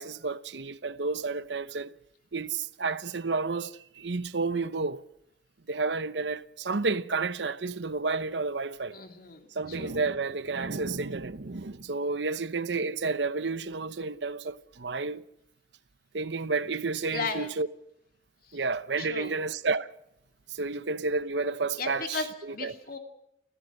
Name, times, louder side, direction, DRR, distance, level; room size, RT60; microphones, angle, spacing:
voice 1, 0.0-1.9 2.3-5.0 5.7-9.0 9.5-15.2 16.1-17.7 18.5-19.9 20.5-22.2 22.6-22.7, right 3 dB, 80° right, 0.9 m, -31 dB
voice 2, 8.9-10.0 17.1-17.5 18.5-18.6 19.0-19.4 21.8-23.0, left 4 dB, 55° left, 2.9 m, -36 dB
29.0 x 15.0 x 6.4 m
head